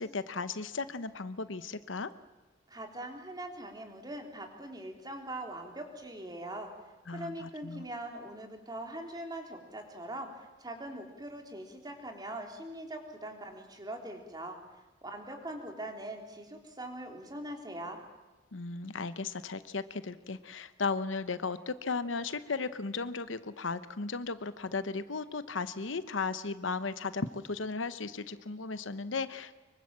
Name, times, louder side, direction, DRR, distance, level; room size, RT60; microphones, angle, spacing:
voice 1, 0.0-2.1 7.1-7.9 18.5-29.5, left 4 dB, 80° left, 13 dB, 1.0 m, -36 dB
voice 2, 2.7-6.7 7.1-14.6 15.0-18.0, right 1 dB, 20° right, 3 dB, 3.4 m, -42 dB
25.0 x 24.0 x 7.5 m, 1.1 s
head